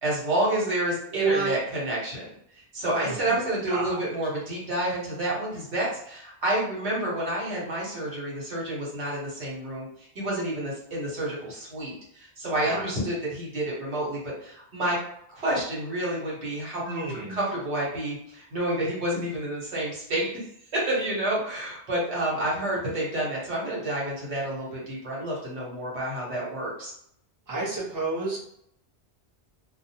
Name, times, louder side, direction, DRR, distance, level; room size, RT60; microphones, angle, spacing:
voice 1, 0.0-2.3 2.5-15.0 15.3-20.4 20.7-26.9, right 1 dB, 75° right, -6 dB, 1.3 m, -29 dB
voice 2, 1.1-1.5 2.8-3.4 3.7-4.0 12.6-12.9 16.8-17.4 27.5-28.4, right 3 dB, 20° right, -7 dB, 0.8 m, -29 dB
2.6 x 2.2 x 2.7 m, 0.71 s
omnidirectional pair, 1.2 m